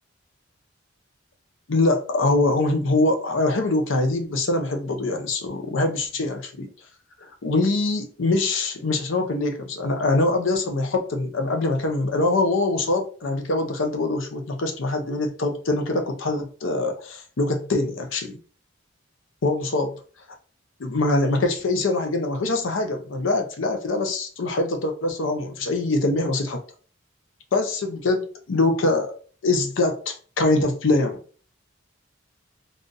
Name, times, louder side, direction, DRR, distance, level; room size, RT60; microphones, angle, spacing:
voice 1, 1.7-6.7 7.4-18.4 19.4-20.0 20.8-26.6 27.5-29.1 29.4-31.2, left 2 dB, 80° left, 0.6 m, -23 dB
3.9 x 2.4 x 2.5 m
head